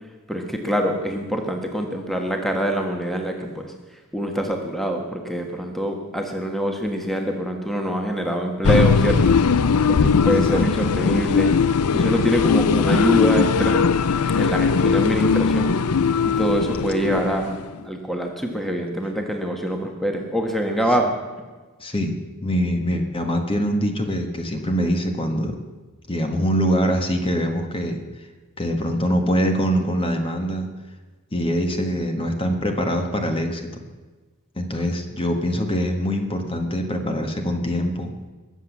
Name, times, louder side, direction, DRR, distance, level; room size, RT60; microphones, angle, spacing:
voice 1, 0.3-3.7 4.1-9.4 9.9-11.5 11.9-13.8 14.4-15.7 16.2-17.5 17.8-21.2, equal, ahead, 3 dB, 1.4 m, -24 dB
sound 1, 8.6-17.8, left 5 dB, 80° left, 0.6 m, -19 dB
voice 2, 10.3-10.6 21.8-22.1 22.4-25.6 26.1-28.0 28.6-30.7 31.3-33.8 34.6-38.1, equal, 25° left, 4 dB, 1.5 m, -23 dB
21.5 x 8.1 x 7.2 m, 1.3 s
head